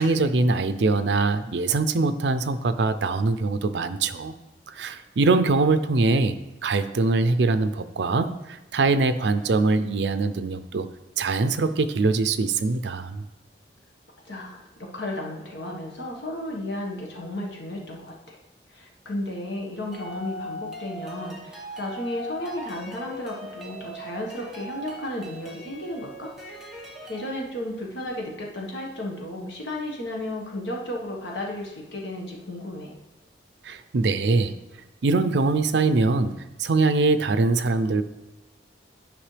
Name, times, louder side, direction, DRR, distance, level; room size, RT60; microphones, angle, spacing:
voice 1, 0.0-4.3 4.7-6.4 6.6-10.9 11.2-13.2 33.6-34.5 35.0-36.3 36.6-38.0, right 3 dB, 75° right, 11 dB, 0.5 m, -23 dB
voice 2, 14.3-14.7 14.9-18.4 18.7-26.3 27.1-33.0, left 1 dB, 85° left, -1 dB, 1.5 m, -33 dB
sound 1, 19.9-27.3, equal, ahead, 1.1 m, -39 dB
10.5 x 5.3 x 3.3 m, 0.99 s
head